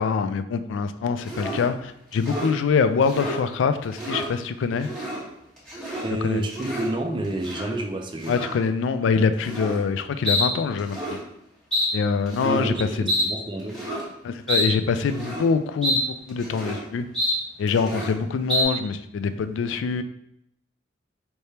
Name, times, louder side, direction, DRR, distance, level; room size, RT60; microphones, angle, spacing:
voice 1, 0.0-4.9 6.2-6.4 8.3-11.2 11.9-13.1 14.2-17.0 17.6-20.0, left 5 dB, 85° left, 11 dB, 0.3 m, -24 dB
sound 1, 1.2-1.6 2.1-2.5 3.0-3.4 3.8-4.3 4.8-5.2 5.6-6.1 6.4-6.9 7.4-7.7 8.2-8.6 9.4-9.8 10.2-10.5 10.8-11.2 11.7-11.9 12.3-12.7 13.1-13.3 13.7-14.0 14.5-14.7 15.0-15.5 15.8-16.0 16.3-16.8 17.1-17.4 17.7-18.1 18.5-18.6, equal, 5° left, 1.2 m, -27 dB
voice 2, 6.0-8.4 12.4-13.8, right 1 dB, 25° right, 3 dB, 0.5 m, -29 dB
4.5 x 3.3 x 2.8 m, 0.77 s
head